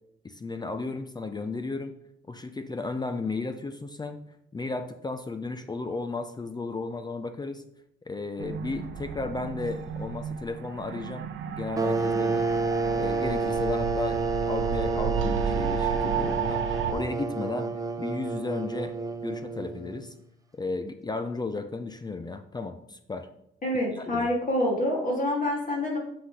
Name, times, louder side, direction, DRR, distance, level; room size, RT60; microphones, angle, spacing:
voice 1, 0.2-1.9 2.3-4.2 4.5-7.6 8.1-12.5 12.9-16.6 16.9-17.7 18.0-18.9 19.2-20.1 20.6-23.3 23.9-24.3, left 3 dB, 20° left, 8 dB, 0.5 m, -34 dB
sound 1, 8.4-16.9, right 7 dB, 80° right, 0.8 m, -33 dB
sound 2, 11.8-20.1, right 3 dB, 15° right, 0.8 m, -29 dB
voice 2, 23.6-26.0, left 1 dB, 45° left, -2 dB, 2.7 m, -27 dB
7.9 x 4.1 x 4.9 m, 0.76 s
cardioid pair, 90°, 20 cm